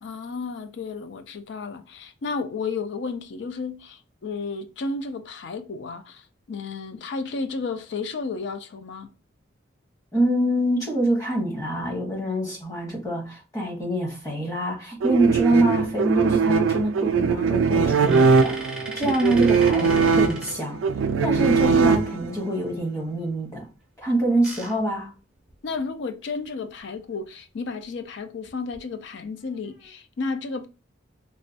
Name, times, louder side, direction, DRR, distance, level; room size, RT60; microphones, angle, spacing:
voice 1, 0.0-9.1 24.3-24.4 25.6-30.7, left 4 dB, 65° left, 0.4 m, -32 dB
voice 2, 10.1-18.5 18.9-20.8 21.2-23.7 24.0-25.1, right 1 dB, 15° left, 0.9 m, -25 dB
sound 1, 15.0-22.5, right 5 dB, 80° right, 0.3 m, -21 dB
sound 2, 17.9-21.3 24.0-25.9 26.4-26.5 26.8-27.0 28.5-28.8 29.4-29.9, right 2 dB, 5° right, 0.5 m, -40 dB
3.1 x 2.2 x 2.6 m
head